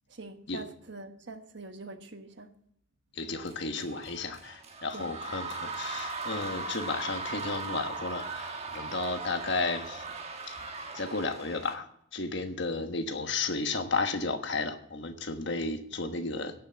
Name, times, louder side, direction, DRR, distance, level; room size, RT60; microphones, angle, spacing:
voice 1, 0.1-2.5 4.9-5.1, right 2 dB, 60° right, 1.2 m, -44 dB
voice 2, 3.1-10.1 10.5-10.6 10.9-11.9 12.1-16.5, left 3 dB, 60° left, 1.3 m, -33 dB
sound 1, 3.4-11.7, right 3 dB, 30° right, 1.2 m, -39 dB
17.0 x 6.0 x 7.8 m
head